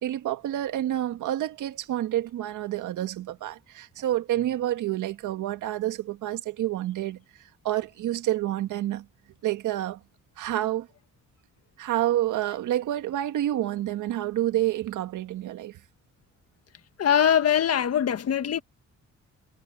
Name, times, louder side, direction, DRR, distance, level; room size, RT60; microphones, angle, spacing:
voice 1, 0.0-7.2 7.6-9.1 9.4-10.0 10.4-10.9 11.8-15.8, right 13 dB, 80° right, 1.8 m, -28 dB
voice 2, 17.0-18.6, left 9 dB, 55° left, 1.6 m, -22 dB
cardioid pair, 90°, 30 cm